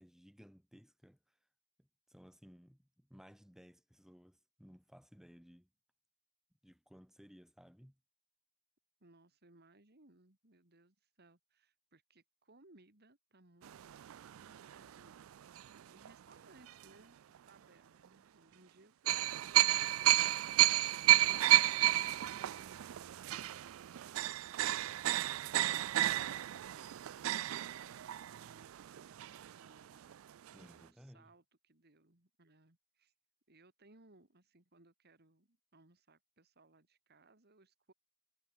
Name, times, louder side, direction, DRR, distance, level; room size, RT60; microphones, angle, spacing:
voice 1, 0.0-1.4 1.8-5.7 6.6-8.0 30.5-31.3, equal, ahead, 4.4 m, -59 dB
voice 2, 9.0-14.0 14.3-20.6 20.9-33.1 33.5-37.9, right 2 dB, 50° right, 3.0 m, -66 dB
sound 1, 13.6-16.1 16.7-16.8 19.1-29.8 30.1-30.2 30.5-30.6, right 15 dB, 75° right, 0.4 m, -32 dB
head